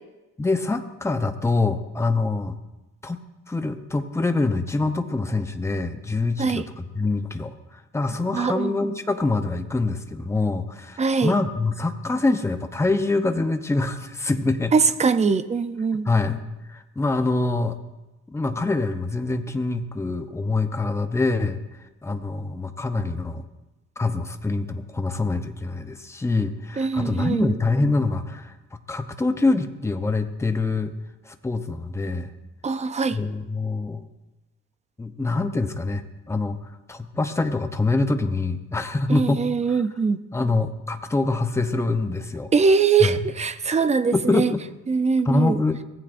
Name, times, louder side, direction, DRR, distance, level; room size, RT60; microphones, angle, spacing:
voice 1, 0.4-2.5 3.0-3.2 3.5-14.7 16.1-16.4 16.7-17.8 18.3-21.6 22.0-23.4 24.0-28.5 28.9-30.9 31.3-32.3 33.1-34.0 35.0-36.6 36.9-39.4 39.7-39.8 40.3-42.5 43.0-43.3 44.1-44.6 45.3-45.8, left 3 dB, 10° left, 7 dB, 0.7 m, -25 dB
voice 2, 8.3-8.7 11.0-11.3 14.7-16.1 26.8-27.6 32.6-33.2 39.1-40.2 42.5-44.5 44.9-45.6, right 5 dB, 20° right, 12 dB, 0.5 m, -22 dB
23.5 x 17.5 x 2.6 m, 1.0 s
cardioid pair, 160°, 30 cm